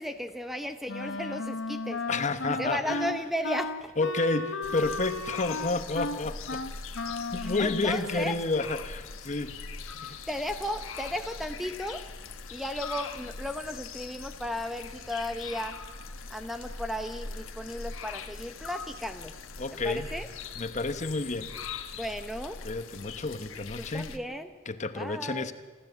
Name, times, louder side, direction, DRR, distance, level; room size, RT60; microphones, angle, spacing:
voice 1, 0.0-2.0 2.6-3.9 7.4-8.3 10.0-12.1 12.5-15.8 16.3-19.3 19.8-20.3 22.0-22.6 23.8-24.5 24.9-25.5, equal, ahead, 8 dB, 0.8 m, -35 dB
Wind instrument woodwind instrument, 0.9-8.5, left 2 dB, 65° left, 1.1 m, -35 dB
voice 2, 2.1-3.0 4.0-6.6 7.3-10.2 19.6-20.1 20.6-21.5 22.6-24.1 24.7-25.5, left 3 dB, 35° left, 11 dB, 1.0 m, -30 dB
sound 1, 4.6-24.2, left 5 dB, 90° left, 1.3 m, -41 dB
28.0 x 13.5 x 8.0 m, 1.4 s
head